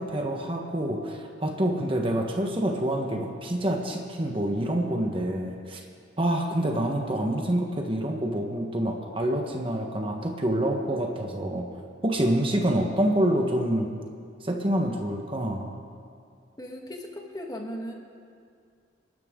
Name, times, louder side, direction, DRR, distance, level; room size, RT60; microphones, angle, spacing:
voice 1, 0.0-5.8 6.2-11.6 12.0-13.9 14.4-15.8, right 1 dB, 30° right, 2 dB, 1.3 m, -27 dB
voice 2, 16.6-17.9, equal, 20° left, 1 dB, 1.7 m, -37 dB
28.0 x 12.5 x 3.8 m, 2.3 s
head